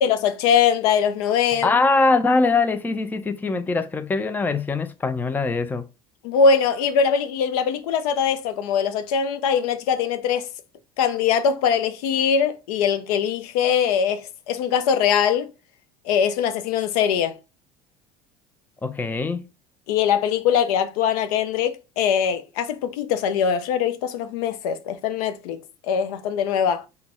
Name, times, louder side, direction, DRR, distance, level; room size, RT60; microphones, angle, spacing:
voice 1, 0.0-1.7 6.2-10.5 11.0-15.5 16.0-17.4 19.9-25.6 25.9-26.9, left 7 dB, 65° left, 0.6 m, -22 dB
voice 2, 1.6-5.9 18.8-19.4, left 3 dB, 10° left, 0.4 m, -22 dB
3.9 x 2.2 x 4.3 m
hypercardioid pair, 70°, 20 cm